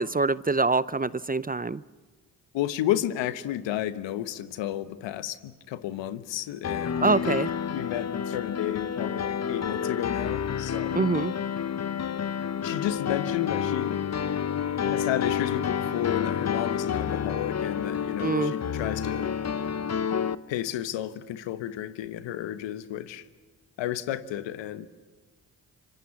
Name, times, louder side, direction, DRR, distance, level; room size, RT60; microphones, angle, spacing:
voice 1, 0.0-1.8 7.0-7.5 10.9-11.3 18.2-18.5, right 3 dB, 20° right, 0.7 m, -25 dB
voice 2, 2.5-7.1 7.7-11.1 12.6-14.1 14.5-19.4 20.5-23.2 23.8-24.9, left 12 dB, 80° left, 1.3 m, -32 dB
Piano, 6.6-20.3, left 8 dB, 35° left, 1.0 m, -29 dB
25.5 x 25.0 x 7.3 m
hypercardioid pair, 45°, 44 cm